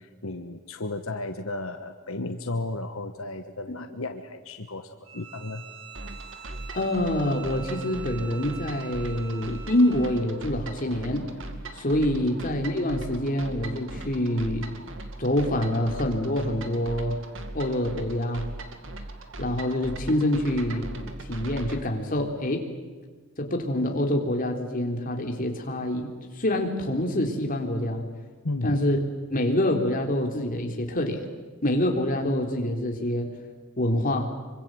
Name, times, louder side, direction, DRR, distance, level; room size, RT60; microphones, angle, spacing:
voice 1, 0.0-5.7 28.4-28.8, left 2 dB, 80° left, 7 dB, 1.3 m, -34 dB
Bowed string instrument, 5.0-10.3, right 9 dB, 85° right, 6.4 m, -45 dB
sound 1, 5.9-21.8, right 2 dB, 65° right, 2.4 m, -39 dB
voice 2, 6.7-11.3 11.8-14.6 15.2-17.2 17.5-18.5 19.4-20.9 21.3-22.6 23.4-26.1 26.4-28.0 28.6-29.0 29.3-31.2 31.6-33.3 33.8-34.3, left 1 dB, 40° left, 2 dB, 3.5 m, -26 dB
25.5 x 24.5 x 8.0 m, 1.4 s
head